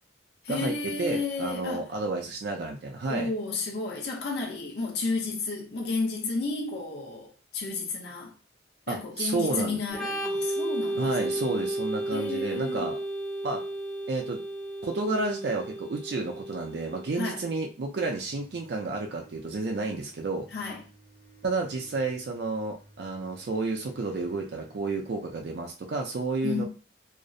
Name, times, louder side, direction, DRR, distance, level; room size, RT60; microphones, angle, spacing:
voice 1, 0.4-1.9 3.1-8.3 8.9-11.7 12.1-12.9 17.2-17.4 20.5-20.8 26.4-26.7, left 3 dB, 60° left, 0.7 m, -32 dB
voice 2, 1.0-3.3 8.9-9.8 11.0-12.9 13.4-13.6 14.1-14.4 14.8-20.5 21.4-26.6, right 3 dB, 60° right, 0.4 m, -31 dB
Organ, 9.9-17.4, right 1 dB, ahead, 0.4 m, -33 dB
sound 1, 18.0-25.6, right 4 dB, 90° left, 1.0 m, -55 dB
2.4 x 2.0 x 2.5 m
head